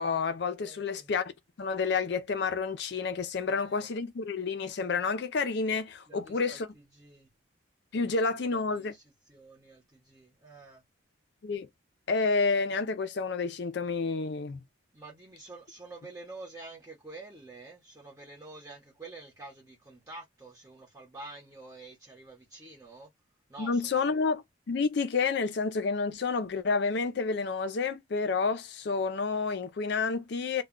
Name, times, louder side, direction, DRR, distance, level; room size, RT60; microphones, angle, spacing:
voice 1, 0.0-1.3 1.6-6.7 7.9-8.9 11.4-11.7 12.1-14.6 23.6-30.6, left 4 dB, 55° left, 0.4 m, -29 dB
voice 2, 0.6-1.1 3.4-3.9 6.1-7.3 7.9-10.8 14.9-23.1 23.5-24.2, right 2 dB, 15° right, 0.8 m, -48 dB
2.2 x 2.1 x 3.6 m
head